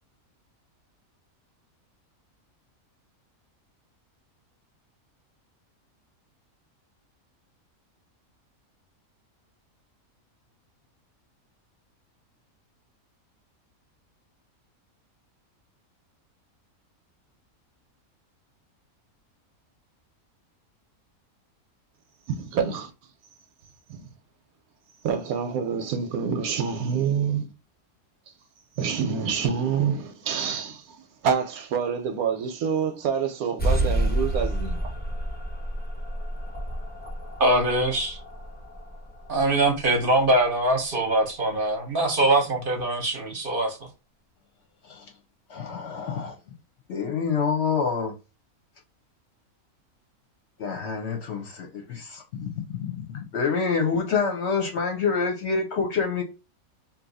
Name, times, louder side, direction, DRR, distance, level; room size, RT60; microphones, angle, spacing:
voice 1, 22.3-22.9 23.9-24.0 25.0-27.5 28.8-34.9, right 7 dB, 80° right, 1.0 m, -27 dB
sound 1, 33.6-40.7, right 1 dB, 10° left, 0.4 m, -30 dB
voice 2, 37.4-38.2 39.3-43.8, right 1 dB, 45° right, 0.8 m, -23 dB
voice 3, 45.5-46.3 46.9-48.1 50.6-56.2, left 5 dB, 60° left, 0.8 m, -27 dB
2.8 x 2.3 x 3.9 m
omnidirectional pair, 1.5 m